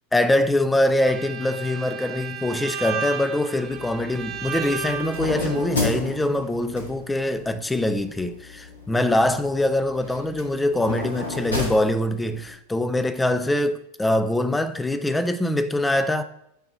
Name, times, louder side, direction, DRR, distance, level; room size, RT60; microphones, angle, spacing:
voice 1, 0.1-16.2, left 1 dB, 5° left, 0.5 m, -23 dB
Bowed string instrument, 1.0-5.7, right 7 dB, 35° right, 0.8 m, -33 dB
sound 1, 3.6-12.5, left 2 dB, 70° left, 1.5 m, -33 dB
8.0 x 3.0 x 6.1 m
figure-of-eight pair, 90°, 0 cm